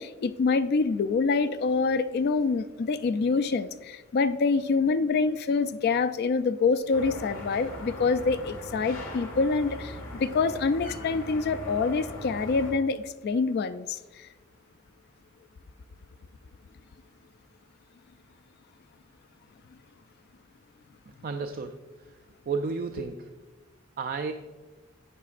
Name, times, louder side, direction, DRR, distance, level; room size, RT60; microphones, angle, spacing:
voice 1, 0.0-14.3, left 4 dB, 50° left, 0.3 m, -26 dB
sound 1, 6.9-12.7, left 1 dB, 75° left, 1.9 m, -40 dB
voice 2, 21.2-21.8 22.1-22.2 22.5-23.3 24.0-24.3, right 4 dB, 45° right, 0.4 m, -32 dB
10.5 x 9.3 x 2.4 m
head